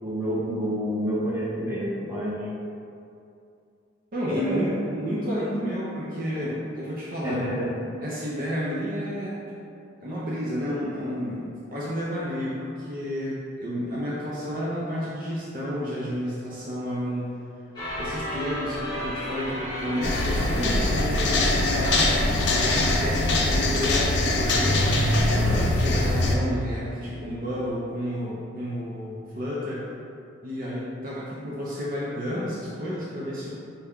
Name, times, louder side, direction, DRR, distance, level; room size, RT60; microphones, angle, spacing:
voice 1, 0.0-2.4 4.3-4.7 7.2-7.7, equal, 15° right, -9 dB, 1.1 m, -28 dB
voice 2, 4.1-7.5 8.0-9.4 10.0-17.3 18.0-24.9 25.3-29.9 30.4-33.5, equal, 45° right, -7 dB, 0.6 m, -31 dB
sound 1, 17.8-23.5, equal, 20° left, 0.9 m, -35 dB
sound 2, 20.0-26.4, left 2 dB, 65° left, 0.5 m, -22 dB
5.4 x 2.3 x 3.6 m, 2.5 s
head